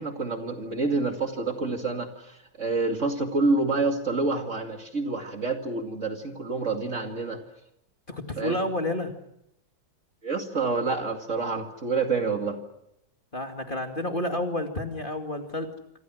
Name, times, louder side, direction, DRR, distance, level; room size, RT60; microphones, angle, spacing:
voice 1, 0.0-7.4 8.4-8.6 10.2-12.6, right 3 dB, 40° right, 4 dB, 2.6 m, -28 dB
voice 2, 8.1-9.1 13.3-15.7, left 1 dB, 25° left, 4 dB, 2.5 m, -30 dB
27.5 x 26.0 x 6.3 m, 0.78 s
omnidirectional pair, 2.1 m